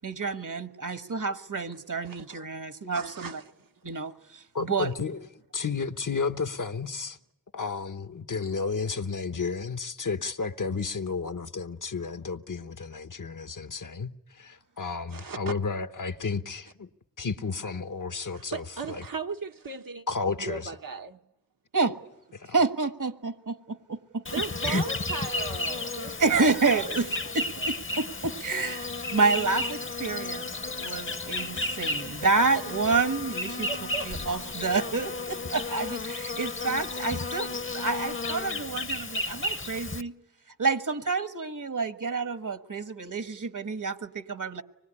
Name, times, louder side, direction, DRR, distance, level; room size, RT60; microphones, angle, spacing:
voice 1, 0.0-3.4 3.8-4.9 21.7-21.9 22.5-24.2 24.6-24.8 26.2-27.1 27.3-30.5 30.8-33.7 34.0-37.5 37.7-40.1 40.6-44.6, right 4 dB, 65° right, 1.4 m, -29 dB
voice 2, 2.0-2.5 2.9-3.7 15.1-15.7 18.3-20.0 20.4-21.2 24.3-27.0 27.2-27.7 33.7-34.4, right 4 dB, 85° right, 1.2 m, -38 dB
voice 3, 4.5-5.2 5.5-7.2 7.5-16.9 17.2-18.6 20.1-20.7 22.3-22.5, left 4 dB, 65° left, 1.0 m, -32 dB
Insect, 24.2-40.0, left 2 dB, 40° left, 0.8 m, -33 dB
25.0 x 21.0 x 9.9 m
wide cardioid pair, 70°, 33 cm